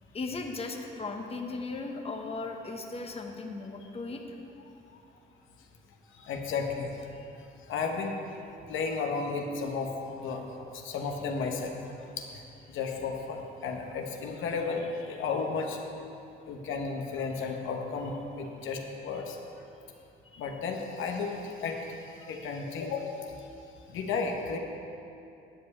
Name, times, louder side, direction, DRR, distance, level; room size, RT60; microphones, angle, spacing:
voice 1, 0.1-4.4 7.2-7.3 20.3-20.5, left 3 dB, 30° left, 2 dB, 1.1 m, -37 dB
voice 2, 6.2-6.9 7.7-8.2 8.7-10.4 10.7-11.7 12.2-12.4 12.7-15.8 16.5-19.4 20.4-21.8 22.2-23.2 23.9-24.6, left 4 dB, 80° left, 2 dB, 1.1 m, -33 dB
10.5 x 5.4 x 8.2 m, 2.8 s
cardioid pair, 90°, 20 cm